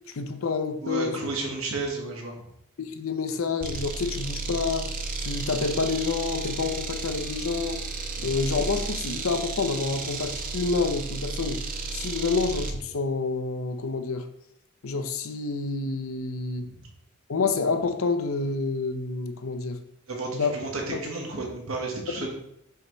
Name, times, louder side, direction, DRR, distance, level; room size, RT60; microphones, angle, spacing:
voice 1, 0.1-1.2 2.8-4.9 5.2-7.8 8.2-11.6 11.9-14.3 14.8-16.7 17.3-19.8 20.3-20.6 20.9-21.0, left 4 dB, 80° left, 8 dB, 0.6 m, -28 dB
voice 2, 0.8-2.3 8.2-8.3 16.6-16.7 20.1-22.3, right 3 dB, 90° right, 0 dB, 1.5 m, -32 dB
sound 1, 3.6-12.8, right 3 dB, 40° right, 0.6 m, -33 dB
5.7 x 5.5 x 3.1 m, 0.76 s
head